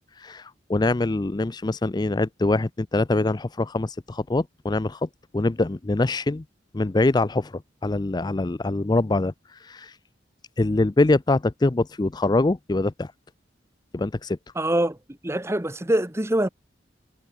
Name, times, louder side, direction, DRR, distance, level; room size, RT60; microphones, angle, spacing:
voice 1, 0.2-6.4 6.7-10.0 10.6-13.1 13.9-14.4, left 2 dB, 25° left, 0.4 m, -24 dB
voice 2, 14.5-16.5, right 1 dB, 15° right, 1.0 m, -24 dB
head